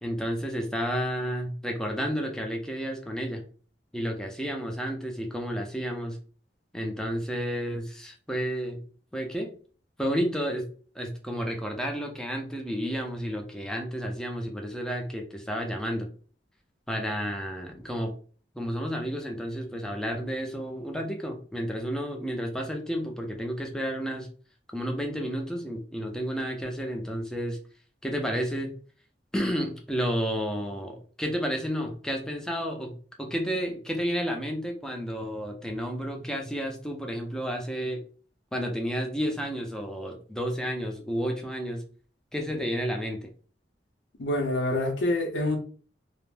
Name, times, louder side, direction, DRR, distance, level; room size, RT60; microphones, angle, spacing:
voice 1, 0.0-3.4 3.9-6.2 6.7-8.8 9.1-9.5 10.0-10.7 11.0-16.1 16.9-18.1 18.5-24.3 24.7-27.6 28.0-28.7 29.3-38.0 38.5-41.8 42.3-43.3, equal, 5° left, 0.4 m, -31 dB
voice 2, 44.2-45.6, left 1 dB, 90° left, 0.6 m, -26 dB
2.4 x 2.0 x 3.2 m
head